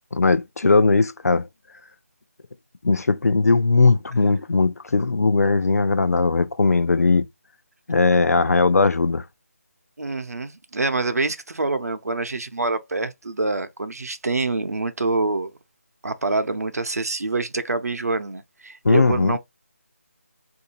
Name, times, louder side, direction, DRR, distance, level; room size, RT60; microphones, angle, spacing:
voice 1, 0.1-1.4 2.8-7.3 7.9-9.2 18.8-19.4, left 3 dB, 85° left, 0.4 m, -19 dB
voice 2, 10.0-15.5 16.0-19.4, right 3 dB, 85° right, 0.7 m, -26 dB
3.7 x 2.6 x 2.7 m
figure-of-eight pair, 175°, 8 cm